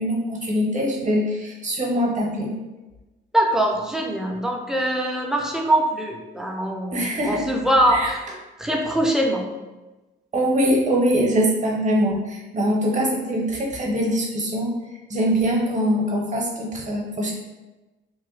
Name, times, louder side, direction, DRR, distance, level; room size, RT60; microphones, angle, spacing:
voice 1, 0.0-2.6 6.9-7.5 7.9-8.1 10.3-14.7 15.1-17.3, equal, 40° right, -1 dB, 0.8 m, -23 dB
voice 2, 3.3-8.2 8.6-9.5, right 1 dB, 5° right, 0 dB, 0.5 m, -22 dB
2.9 x 2.1 x 3.1 m, 1.1 s
cardioid pair, 90°, 20 cm